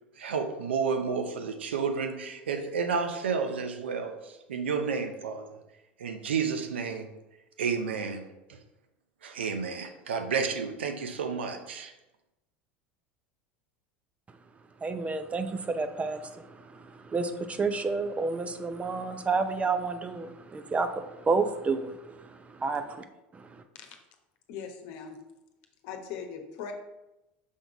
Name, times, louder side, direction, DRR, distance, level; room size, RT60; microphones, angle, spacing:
voice 1, 0.2-5.6 6.0-7.1 7.6-8.6 9.2-11.9, right 5 dB, 80° right, 6 dB, 0.7 m, -31 dB
voice 2, 14.8-23.0 23.3-23.6, right 4 dB, 20° right, 9 dB, 0.6 m, -30 dB
voice 3, 24.5-25.2 25.8-26.7, left 6 dB, 60° left, 4 dB, 1.0 m, -40 dB
6.3 x 3.8 x 4.6 m, 0.97 s
hypercardioid pair, 80°, 6 cm